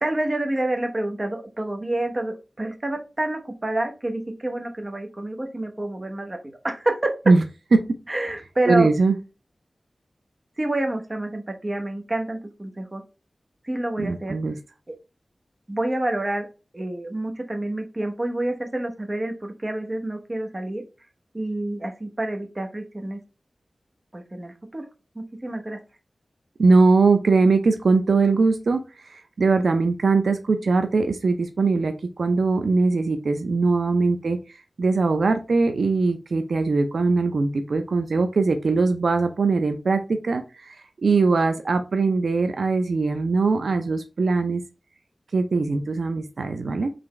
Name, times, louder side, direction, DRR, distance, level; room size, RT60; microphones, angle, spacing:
voice 1, 0.0-7.2 8.1-8.9 10.6-13.0 13.6-14.4 14.9-15.0 15.7-16.5 16.7-20.8 21.3-23.2 24.1-24.9 25.1-25.8, right 1 dB, 30° right, 4 dB, 0.8 m, -28 dB
voice 2, 8.7-9.2 14.0-14.6 26.6-44.6 45.3-46.9, right 3 dB, 85° right, 7 dB, 0.4 m, -21 dB
3.9 x 3.3 x 3.1 m, 0.30 s
wide cardioid pair, 90°, 0 cm